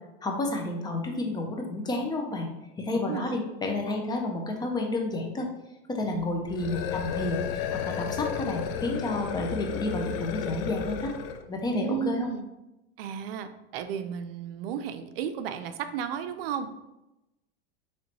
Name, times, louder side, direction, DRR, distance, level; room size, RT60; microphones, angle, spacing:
voice 1, 0.2-2.5 2.8-5.5 5.9-11.1 11.5-12.3, left 2 dB, 15° left, 2 dB, 0.4 m, -30 dB
voice 2, 2.9-3.4 6.1-6.3 11.7-12.4 13.0-16.7, right 8 dB, 80° right, 10 dB, 0.5 m, -33 dB
sound 1, 6.4-11.5, left 8 dB, 75° left, 0.4 m, -33 dB
4.3 x 3.0 x 2.9 m, 0.94 s
supercardioid pair, 130°, 29 cm